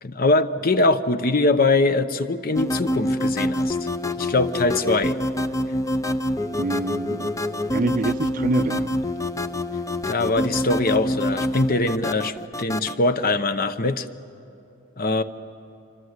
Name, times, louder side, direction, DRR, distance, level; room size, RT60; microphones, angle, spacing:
voice 1, 0.0-3.8 4.2-5.2 10.1-14.1 15.0-15.2, left 2 dB, 45° left, 11 dB, 0.8 m, -22 dB
sound 1, 2.6-12.9, left 1 dB, 15° left, 0.6 m, -26 dB
voice 2, 6.6-7.3 7.7-9.0, right 2 dB, 40° right, 13 dB, 0.5 m, -25 dB
27.0 x 24.5 x 8.1 m, 2.8 s
head